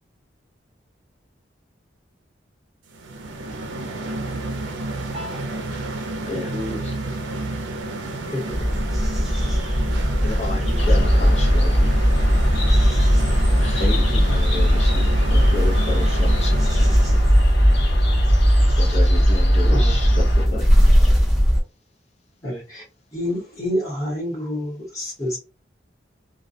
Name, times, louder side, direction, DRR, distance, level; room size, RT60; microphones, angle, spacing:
sound 1, 2.9-17.5, right 2 dB, 85° right, 0.5 m, -31 dB
voice 1, 3.3-5.5, equal, 30° right, 0.5 m, -41 dB
voice 2, 6.3-7.0 10.2-12.1 13.6-17.3 18.7-20.9, left 3 dB, 35° left, 0.6 m, -32 dB
voice 3, 8.3-8.8 19.6-19.9 22.4-22.8 23.1-25.4, left 1 dB, 20° left, 1.1 m, -28 dB
sound 2, 8.5-21.6, equal, ahead, 0.8 m, -21 dB
sound 3, 10.8-20.5, equal, 80° left, 1.0 m, -18 dB
2.2 x 2.2 x 2.6 m
head